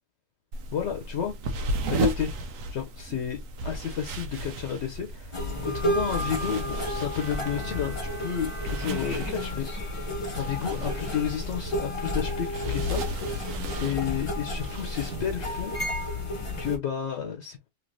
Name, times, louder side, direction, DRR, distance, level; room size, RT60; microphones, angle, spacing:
sound 1, 0.5-16.1, right 1 dB, 85° right, 1.1 m, -35 dB
voice 1, 0.7-1.3 1.9-2.3 2.7-10.0 10.4-13.5 13.8-15.8 16.6-17.6, left 8 dB, 65° left, 0.9 m, -32 dB
sound 2, 5.3-16.8, left 1 dB, 30° left, 0.6 m, -32 dB
Bowed string instrument, 7.2-9.9, right 6 dB, 55° right, 0.5 m, -44 dB
3.2 x 2.8 x 2.6 m
omnidirectional pair, 1.3 m